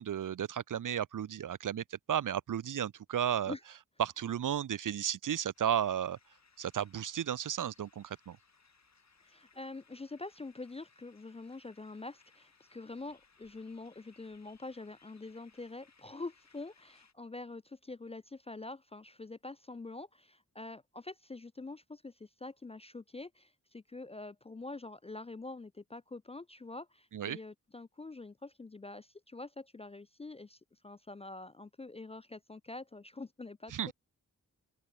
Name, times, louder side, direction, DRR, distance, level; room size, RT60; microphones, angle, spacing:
voice 1, 0.0-3.5 4.0-6.2 6.6-8.4 27.1-27.4 33.7-33.9, right 9 dB, 60° right, 0.6 m, -33 dB
sound 1, 5.5-17.1, left 4 dB, 50° left, 3.2 m, -66 dB
voice 2, 9.3-33.9, left 3 dB, 20° left, 0.4 m, -46 dB
open air
cardioid pair, 50°, 36 cm